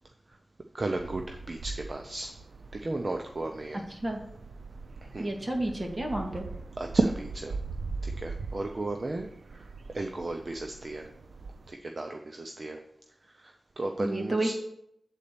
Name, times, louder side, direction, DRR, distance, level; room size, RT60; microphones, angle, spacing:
voice 1, 0.7-2.3 2.8-3.8 5.1-5.3 6.8-7.6 8.0-9.3 9.5-9.7 9.9-11.0 11.7-12.8 13.4-14.5, right 2 dB, 50° right, 4 dB, 0.7 m, -33 dB
sound 1, 1.0-11.7, right 4 dB, 90° right, 0.4 m, -41 dB
voice 2, 3.9-4.2 5.2-6.5 14.0-14.5, right 1 dB, 30° right, 1 dB, 2.0 m, -30 dB
8.2 x 4.2 x 6.8 m, 0.75 s
wide cardioid pair, 60°, 0 cm